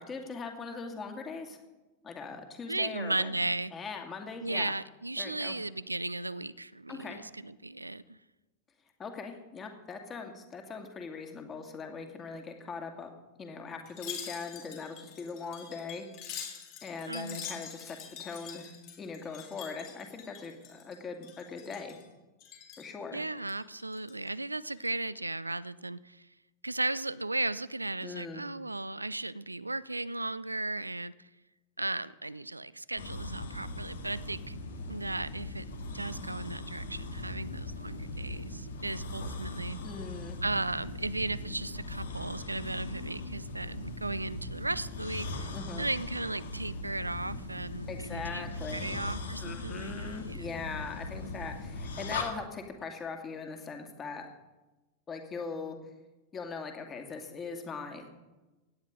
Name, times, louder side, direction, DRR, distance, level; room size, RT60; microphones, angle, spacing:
voice 1, 0.0-1.6 2.0-3.4 3.7-4.7 5.2-5.6 6.9-7.2 9.0-13.1 13.4-16.1 16.8-22.0 22.8-23.2 28.0-28.4 39.8-40.4 45.5-45.9 47.9-49.0 49.4-54.3 55.1-55.8 56.3-58.1, left 4 dB, 25° left, 4 dB, 2.3 m, -41 dB
voice 2, 2.7-3.7 4.4-8.2 17.1-17.6 23.1-26.3 26.6-31.3 31.8-34.6 34.9-35.7 35.9-39.8 40.4-45.5 45.8-50.5, right 2 dB, 85° right, 18 dB, 0.4 m, -36 dB
Wind chime, 13.9-21.0 21.2-22.0 22.4-22.9 23.4-24.3 24.7-24.9, left 8 dB, 40° left, 3.5 m, -45 dB
sound 1, 33.0-52.2, left 2 dB, 65° left, 2.1 m, -39 dB
17.0 x 10.0 x 5.2 m, 1.1 s
figure-of-eight pair, 90°, 0 cm